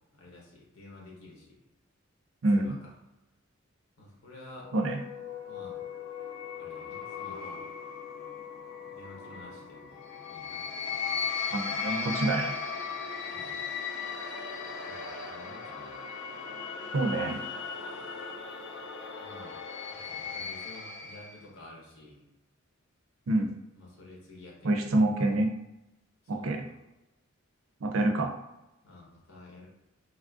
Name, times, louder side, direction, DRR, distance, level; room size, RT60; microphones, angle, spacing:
voice 1, 0.1-1.6 2.5-2.9 4.0-4.7 5.4-5.8 6.6-7.6 8.8-10.0 10.3-10.7 11.1-11.5 13.3-13.6 14.8-16.0 19.2-22.3 23.7-25.3 26.3-26.8 28.8-29.7, left 2 dB, 90° left, -3 dB, 1.0 m, -51 dB
voice 2, 2.4-2.8 4.7-5.0 11.5-12.5 16.9-17.4 23.3-23.5 24.6-25.5 26.3-26.6 27.8-28.3, right 2 dB, 70° right, 4 dB, 0.4 m, -27 dB
sound 1, 4.6-21.4, left 5 dB, 60° left, 0.4 m, -37 dB
3.1 x 2.4 x 2.4 m, 0.95 s
head